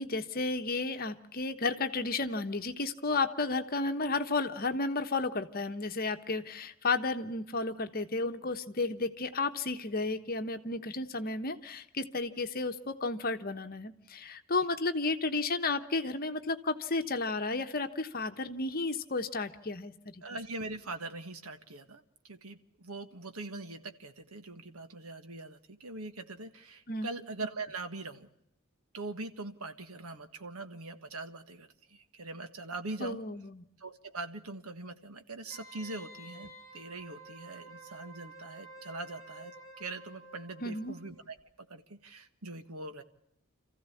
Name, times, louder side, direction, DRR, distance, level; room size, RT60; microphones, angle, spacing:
voice 1, 0.0-20.2 26.9-27.1 33.0-33.6 40.6-41.0, left 3 dB, 40° left, 8 dB, 1.2 m, -33 dB
voice 2, 20.2-28.3 28.9-33.2 33.8-41.4 41.7-43.0, right 3 dB, 85° right, 9 dB, 1.6 m, -42 dB
Wind instrument woodwind instrument, 35.5-41.1 41.4-41.5, right 2 dB, 15° left, 4.5 m, -51 dB
27.0 x 15.0 x 8.4 m, 0.80 s
head